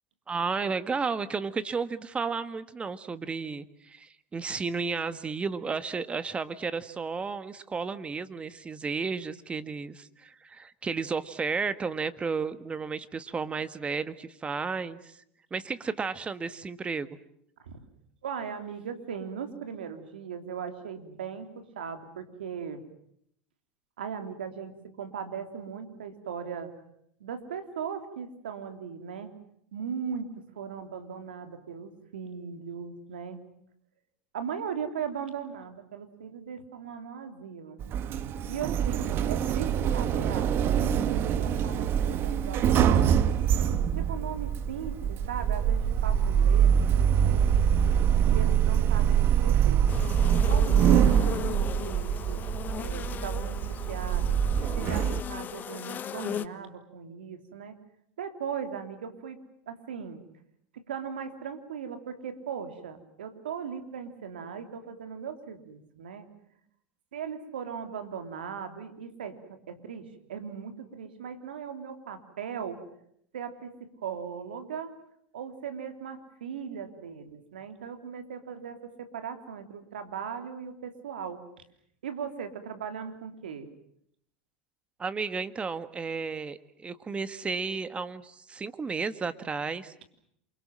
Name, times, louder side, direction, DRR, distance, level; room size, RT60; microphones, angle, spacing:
voice 1, 0.3-15.2 15.5-17.1 85.0-90.0, right 5 dB, 20° right, 12 dB, 1.6 m, -33 dB
voice 2, 18.2-22.8 24.0-26.7 27.2-29.3 29.7-30.3 30.5-33.4 34.3-37.8 38.4-43.4 44.0-47.7 48.2-49.9 50.3-52.4 52.8-53.6 53.9-54.3 54.7-57.8 58.2-59.4 59.7-60.2 60.7-66.3 67.1-72.8 73.3-74.9 75.3-81.4 82.0-83.7, right 7 dB, 90° right, 7 dB, 3.3 m, -38 dB
Sliding door, 37.8-55.2, right 8 dB, 45° right, 1.5 m, -24 dB
sound 1, 49.9-56.5, left 9 dB, 35° left, 1.3 m, -37 dB
28.0 x 24.5 x 7.6 m, 0.71 s
hypercardioid pair, 95°, 5 cm